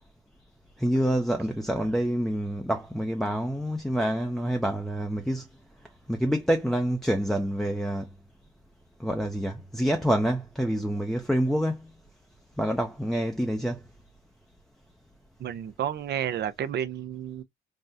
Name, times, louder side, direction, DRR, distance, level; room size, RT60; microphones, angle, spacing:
voice 1, 0.8-5.5 6.1-8.1 9.0-11.9 12.6-13.8, equal, ahead, 0.5 m, -27 dB
voice 2, 15.4-17.4, right 9 dB, 60° right, 0.5 m, -31 dB
3.6 x 2.1 x 2.6 m
cardioid pair, 90°, 20 cm